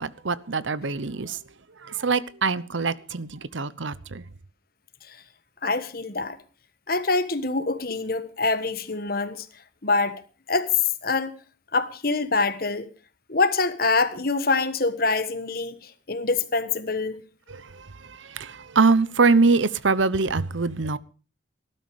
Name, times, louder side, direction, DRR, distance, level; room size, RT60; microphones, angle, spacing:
voice 1, 0.0-1.4 1.8-4.2 17.5-21.0, right 4 dB, 80° right, 0.9 m, -24 dB
voice 2, 5.6-6.4 6.9-9.5 9.8-10.2 10.5-10.7 11.0-11.3 11.7-12.9 13.3-17.2, left 3 dB, 50° left, 1.4 m, -25 dB
19.0 x 12.0 x 4.8 m
head